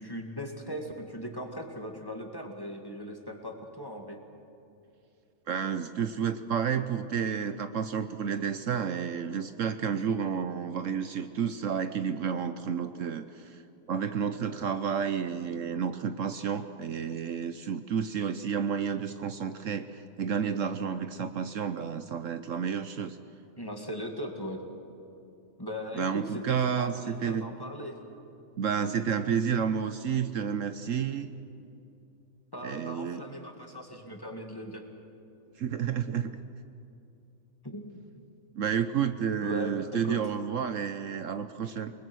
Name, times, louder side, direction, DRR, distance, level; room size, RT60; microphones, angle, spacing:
voice 1, 0.0-4.2 10.1-10.2 23.6-24.6 25.6-28.0 32.5-34.8 37.6-37.9 39.4-40.2, equal, 15° left, 2 dB, 2.2 m, -39 dB
voice 2, 5.5-13.6 13.9-23.2 25.9-27.5 28.6-31.3 32.6-33.2 35.6-36.3 38.6-41.9, right 7 dB, 65° right, 10 dB, 1.1 m, -31 dB
29.0 x 20.0 x 6.3 m, 2.7 s
omnidirectional pair, 1.5 m